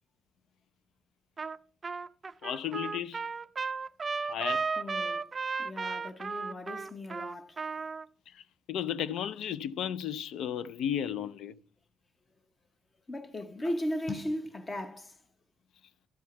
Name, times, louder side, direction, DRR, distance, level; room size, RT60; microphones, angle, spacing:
Trumpet, 1.4-1.6 1.8-8.0, right 4 dB, 30° right, 0.4 m, -34 dB
voice 1, 2.4-3.2 4.3-4.7 8.3-11.6, left 9 dB, 75° left, 0.4 m, -34 dB
voice 2, 4.8-5.2 5.6-7.6 13.1-15.2, left 1 dB, 25° left, 0.9 m, -37 dB
12.5 x 4.5 x 5.6 m
cardioid pair, 120°, 0 cm